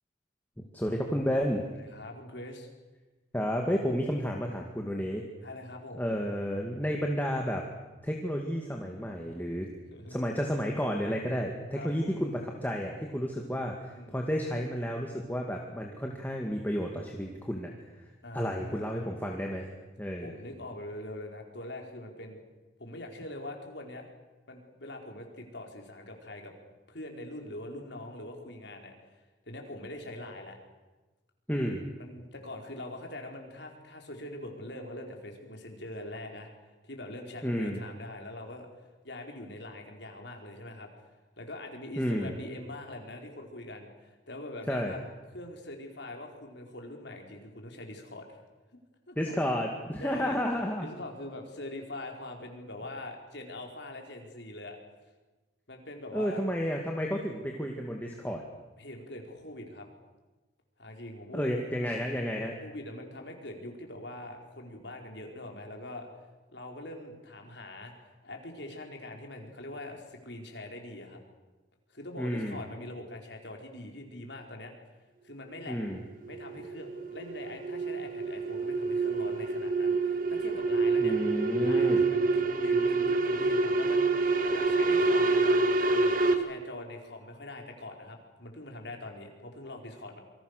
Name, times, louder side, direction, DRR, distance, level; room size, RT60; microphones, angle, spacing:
voice 1, 0.7-1.7 3.3-5.2 6.0-7.7 8.0-9.7 10.1-13.8 14.1-17.7 18.3-19.7 20.0-20.3 31.5-31.8 37.4-37.8 42.0-42.3 44.7-44.9 49.2-50.9 56.1-58.4 61.3-62.5 72.2-72.6 75.7-76.0 81.0-82.0, equal, 10° left, 1 dB, 2.2 m, -31 dB
voice 2, 1.8-2.7 5.4-6.1 9.9-10.2 11.8-11.9 13.5-14.2 18.2-19.1 20.2-22.4 22.8-24.0 24.5-26.5 26.9-28.9 29.5-30.6 32.0-38.7 39.0-40.9 41.4-45.0 45.3-48.4 49.1-49.5 50.0-50.4 50.8-54.8 55.7-56.4 58.8-59.9 60.8-61.5 62.6-66.1 66.5-71.2 71.9-74.7 75.2-75.8 76.3-81.2 81.6-85.6 85.8-90.2, left 1 dB, 65° left, 2 dB, 4.6 m, -43 dB
sound 1, 75.8-86.3, right 3 dB, 45° right, 2.1 m, -27 dB
27.5 x 24.0 x 6.7 m, 1.2 s
head